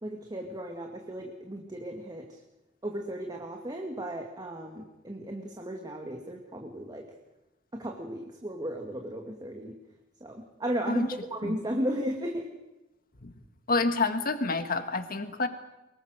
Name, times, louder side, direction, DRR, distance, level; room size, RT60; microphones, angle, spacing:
voice 1, 0.0-2.3 2.8-7.0 7.7-9.7 10.2-11.0 11.3-12.5, equal, 20° right, 2 dB, 2.3 m, -35 dB
voice 2, 13.7-15.5, left 3 dB, 50° left, 8 dB, 1.8 m, -28 dB
24.0 x 23.0 x 6.6 m, 1.0 s
head